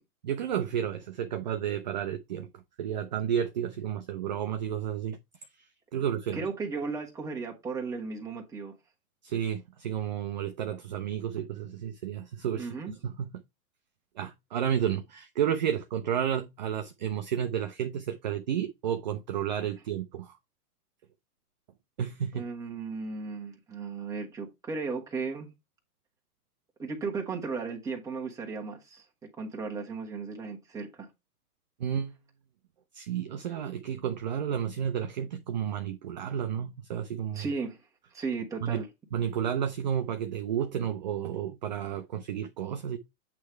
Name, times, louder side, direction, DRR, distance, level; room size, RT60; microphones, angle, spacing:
voice 1, 0.2-2.5 2.8-5.2 5.9-6.4 9.2-12.7 13.0-13.4 14.2-20.4 22.0-22.5 31.8-32.1 32.9-37.4 38.6-38.8 39.1-43.0, right 9 dB, 30° right, 0.4 m, -31 dB
voice 2, 6.3-8.7 12.6-12.9 22.3-25.5 26.8-29.0 29.4-31.1 37.3-37.8 38.1-38.9, right 4 dB, 5° right, 1.2 m, -35 dB
8.3 x 3.3 x 4.5 m
hypercardioid pair, 150°, 45 cm